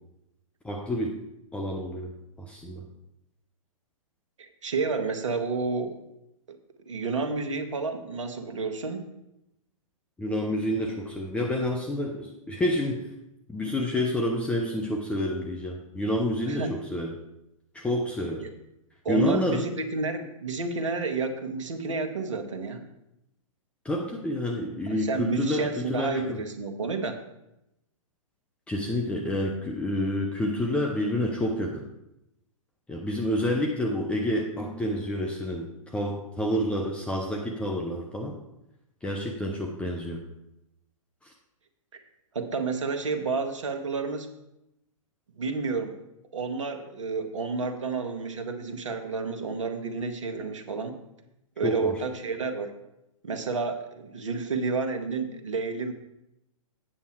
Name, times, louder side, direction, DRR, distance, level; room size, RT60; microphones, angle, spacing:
voice 1, 0.6-1.1 1.5-2.1 2.4-2.8 10.2-13.0 13.5-17.1 17.7-18.5 19.1-19.7 23.8-26.4 28.7-31.7 32.9-35.7 35.9-38.4 39.0-40.2 51.6-51.9, left 1 dB, 5° left, -1 dB, 0.9 m, -28 dB
voice 2, 4.4-6.0 6.5-6.6 6.9-9.0 16.5-16.7 18.4-18.5 19.0-22.8 24.9-27.2 41.9-42.0 42.3-44.3 45.4-46.0 46.3-51.0 51.6-52.7 53.2-55.9, right 4 dB, 65° right, 7 dB, 1.3 m, -30 dB
8.8 x 7.0 x 4.7 m, 0.85 s
figure-of-eight pair, 115°, 17 cm